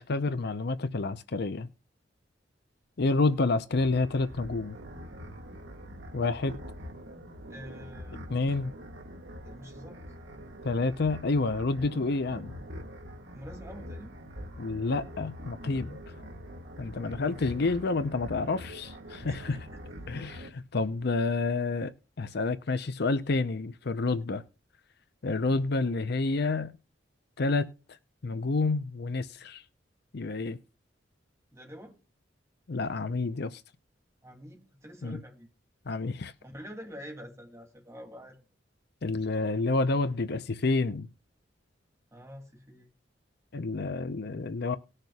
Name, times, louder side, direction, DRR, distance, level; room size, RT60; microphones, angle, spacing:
voice 1, 0.0-1.7 3.0-4.8 6.1-6.6 8.3-8.7 10.6-12.5 14.6-16.0 16.8-19.3 20.1-21.9 22.2-24.4 25.2-26.7 27.4-27.7 28.2-29.6 30.1-30.6 32.7-33.6 35.0-35.2 35.9-36.3 39.0-41.1 43.5-44.8, left 3 dB, 60° left, 0.7 m, -29 dB
sound 1, 3.8-20.5, equal, 75° right, 1.8 m, -44 dB
voice 2, 7.5-8.2 9.4-10.1 13.3-14.2 17.2-17.7 19.3-19.8 25.8-26.0 31.5-31.9 34.2-35.5 36.4-38.4 42.1-42.9, equal, 15° right, 2.6 m, -47 dB
19.0 x 6.6 x 2.3 m
head